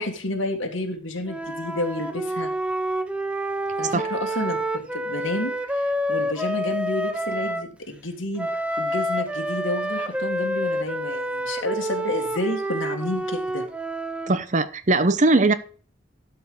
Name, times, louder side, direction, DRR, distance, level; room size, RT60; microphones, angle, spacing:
voice 1, 0.0-2.5 3.8-8.5 8.8-13.6, left 1 dB, 90° left, 2.0 m, -30 dB
Wind instrument woodwind instrument, 1.3-7.7 8.4-14.4, equal, 5° right, 0.8 m, -28 dB
voice 2, 14.3-15.5, right 2 dB, 40° right, 0.7 m, -20 dB
12.5 x 4.8 x 5.0 m
head